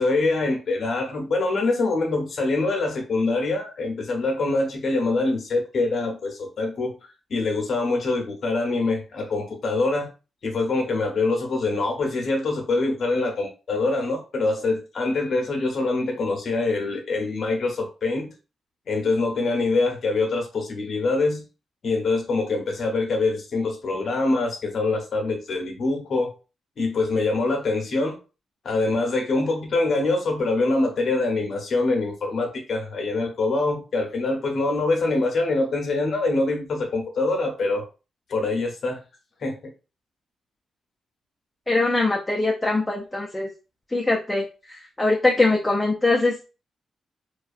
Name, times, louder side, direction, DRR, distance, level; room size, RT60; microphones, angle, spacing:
voice 1, 0.0-6.9 7.3-10.1 10.4-18.3 18.9-21.4 21.8-26.3 26.8-28.2 28.6-37.8 38.3-39.0 39.4-39.6, left 3 dB, 60° left, 3 dB, 0.7 m, -24 dB
voice 2, 41.7-43.5 43.9-44.4 45.0-46.5, left 2 dB, 15° left, 0 dB, 0.4 m, -22 dB
2.4 x 2.3 x 2.3 m, 0.32 s
cardioid pair, 70°, 0 cm